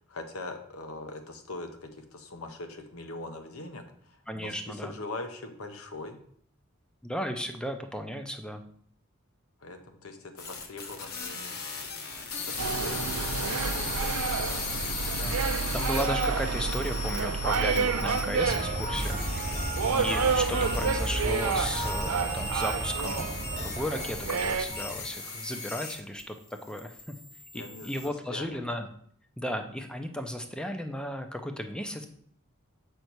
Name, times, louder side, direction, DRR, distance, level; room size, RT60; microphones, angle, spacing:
voice 1, 0.0-6.2 9.6-11.5 12.4-14.9 27.5-28.6, left 2 dB, 80° left, 6 dB, 1.0 m, -42 dB
voice 2, 4.3-4.9 7.0-8.6 15.2-15.4 15.7-27.1 27.5-28.9 29.4-32.0, equal, 5° left, 6 dB, 0.6 m, -35 dB
sound 1, 10.4-26.2 26.5-28.1, left 4 dB, 50° left, 1.0 m, -37 dB
sound 2, 12.6-24.7, right 5 dB, 85° right, 0.5 m, -30 dB
sound 3, 18.4-25.1, right 1 dB, 40° right, 1.2 m, -34 dB
6.6 x 5.4 x 4.6 m, 0.62 s
head